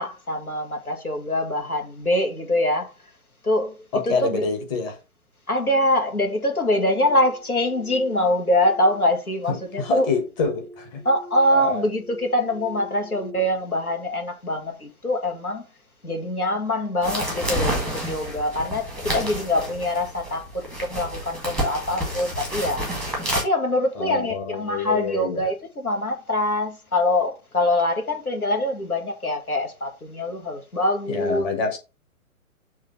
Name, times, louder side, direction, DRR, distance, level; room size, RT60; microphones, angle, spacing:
voice 1, 0.0-2.9 3.4-3.7 4.0-4.4 5.5-10.1 11.1-15.6 16.0-31.5, left 1 dB, 80° left, 2.1 m, -24 dB
voice 2, 3.9-5.0 9.5-11.0 11.5-11.9 23.9-25.5 31.1-31.8, left 4 dB, 20° left, 1.3 m, -26 dB
sound 1, 7.1-13.4, left 1 dB, 40° left, 1.6 m, -45 dB
sound 2, 17.0-23.4, right 1 dB, ahead, 1.0 m, -29 dB
6.5 x 3.2 x 5.6 m
figure-of-eight pair, 130°, 44 cm